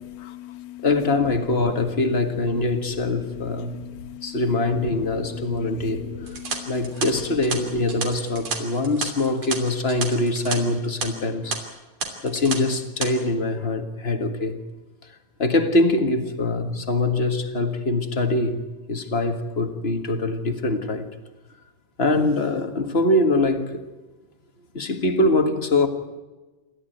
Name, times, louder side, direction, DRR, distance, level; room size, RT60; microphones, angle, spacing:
voice 1, 0.0-0.8 3.7-4.4 5.4-6.8, left 9 dB, 60° left, 8 dB, 2.5 m, -39 dB
voice 2, 0.8-3.8 4.2-6.1 6.7-11.6 12.2-14.6 15.4-18.6 18.9-21.1 22.0-23.8 24.7-25.9, left 2 dB, 35° left, 7 dB, 0.9 m, -23 dB
sound 1, 6.3-10.6 10.8-11.1 11.5-11.6 12.0-12.6 12.8-13.1, right 4 dB, 50° right, 4.0 m, -30 dB
28.0 x 13.5 x 9.2 m, 1.2 s
omnidirectional pair, 3.9 m